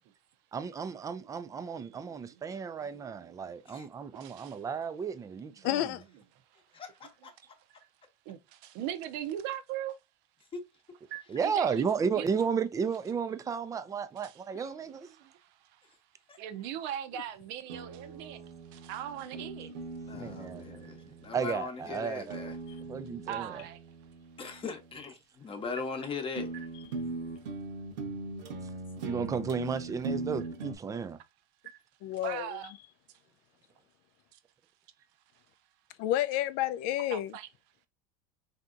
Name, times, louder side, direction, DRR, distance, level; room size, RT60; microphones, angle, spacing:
voice 1, 0.5-5.9 11.3-15.1 20.2-20.8 21.3-22.5 22.9-23.6 29.0-31.2, right 6 dB, 15° right, 0.4 m, -33 dB
voice 2, 4.2-4.5 8.3-9.9 11.1-11.8 12.1-12.3 14.2-14.3 16.4-18.4 18.7-19.7 23.3-23.8 26.5-26.7 32.2-32.7 37.1-37.5, right 11 dB, 60° right, 0.6 m, -39 dB
voice 3, 5.6-6.0 20.1-20.3 32.0-32.5 36.0-37.3, left 13 dB, 55° left, 0.4 m, -30 dB
voice 4, 6.7-7.3 10.5-10.6 16.3-16.4 20.1-22.6 24.4-26.5, left 4 dB, 25° left, 0.8 m, -39 dB
sound 1, 17.7-21.5 22.3-25.0 25.8-25.9 26.4-30.8, right 3 dB, 85° right, 1.1 m, -40 dB
3.4 x 2.7 x 2.5 m
supercardioid pair, 110°, 21 cm